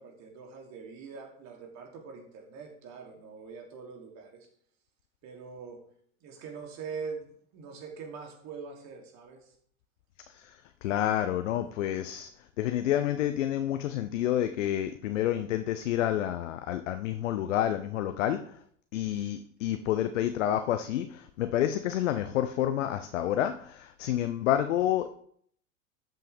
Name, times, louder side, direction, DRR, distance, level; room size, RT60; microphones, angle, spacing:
voice 1, 0.0-4.5 5.2-5.9 6.2-9.5, right 5 dB, 45° right, 1 dB, 3.2 m, -43 dB
voice 2, 10.8-12.3 12.6-18.4 18.9-25.1, left 11 dB, 60° left, 8 dB, 0.9 m, -29 dB
13.0 x 7.7 x 3.6 m, 0.63 s
figure-of-eight pair, 85°, 41 cm